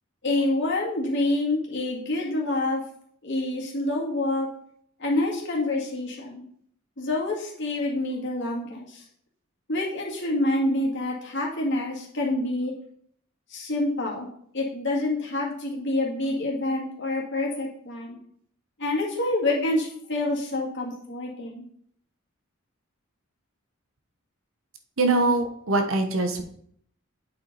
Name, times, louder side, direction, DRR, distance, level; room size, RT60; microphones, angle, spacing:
voice 1, 0.2-2.8 3.2-4.5 5.0-6.4 7.0-9.0 9.7-12.7 13.5-14.3 14.5-18.2 18.8-21.7, left 2 dB, 60° left, -2 dB, 1.9 m, -27 dB
voice 2, 25.0-26.4, right 2 dB, 70° right, 6 dB, 1.0 m, -23 dB
8.6 x 4.7 x 4.0 m, 0.66 s
head